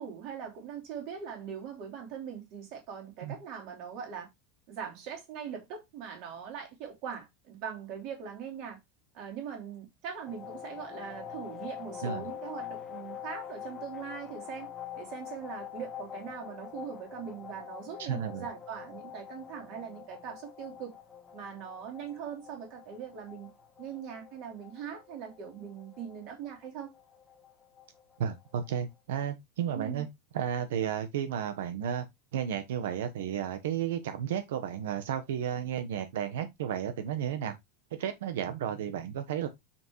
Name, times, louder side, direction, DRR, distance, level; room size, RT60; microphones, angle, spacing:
voice 1, 0.0-4.3 4.7-8.8 9.1-14.7 15.0-21.0 21.3-23.5 23.8-26.9 29.7-30.0, right 7 dB, 40° right, 3.2 m, -41 dB
sound 1, 10.3-28.8, left 9 dB, 10° left, 1.3 m, -45 dB
voice 2, 18.0-18.5 28.2-30.1 30.3-32.0 32.3-37.5 38.0-39.5, right 9 dB, 90° right, 1.2 m, -33 dB
7.2 x 5.9 x 3.1 m
supercardioid pair, 180°, 0 cm